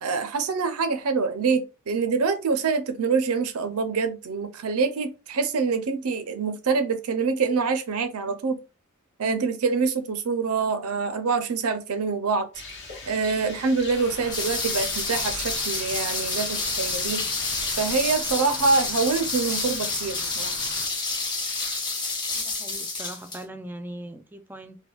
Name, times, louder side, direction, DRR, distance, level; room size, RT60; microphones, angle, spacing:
voice 1, 0.0-8.6 9.2-12.5 13.1-17.2 17.8-20.6, right 4 dB, 85° right, 0.5 m, -25 dB
Rain, 12.5-18.0, left 3 dB, 55° left, 0.9 m, -41 dB
sound 1, 13.9-20.9, left 4 dB, 80° left, 0.6 m, -42 dB
sound 2, 14.3-23.4, left 3 dB, 20° left, 0.9 m, -29 dB
voice 2, 22.3-24.8, right 1 dB, 10° right, 0.3 m, -40 dB
3.3 x 2.2 x 2.3 m
head